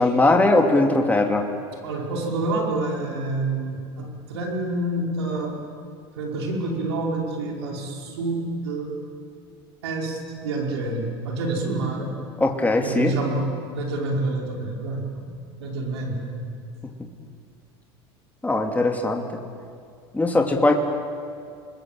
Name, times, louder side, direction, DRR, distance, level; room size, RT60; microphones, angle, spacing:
voice 1, 0.0-1.5 12.4-13.1 18.4-19.2 20.1-20.7, left 2 dB, 10° left, 2 dB, 2.7 m, -20 dB
voice 2, 1.8-5.6 6.1-8.9 9.8-12.2 12.8-15.2 15.6-16.4, right 2 dB, 90° right, 0 dB, 5.1 m, -28 dB
29.5 x 21.0 x 7.5 m, 2.3 s
hypercardioid pair, 90°, 14 cm